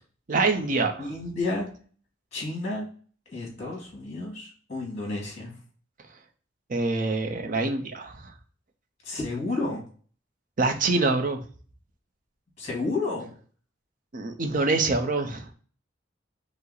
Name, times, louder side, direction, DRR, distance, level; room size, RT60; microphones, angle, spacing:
voice 1, 0.3-1.1 6.7-8.3 10.6-11.4 14.1-15.5, right 3 dB, 45° right, 5 dB, 0.6 m, -25 dB
voice 2, 1.0-1.7 2.3-2.8 3.3-5.5 9.0-9.8 12.6-13.3, left 2 dB, 35° left, -2 dB, 2.0 m, -31 dB
5.5 x 2.1 x 3.8 m, 0.43 s
head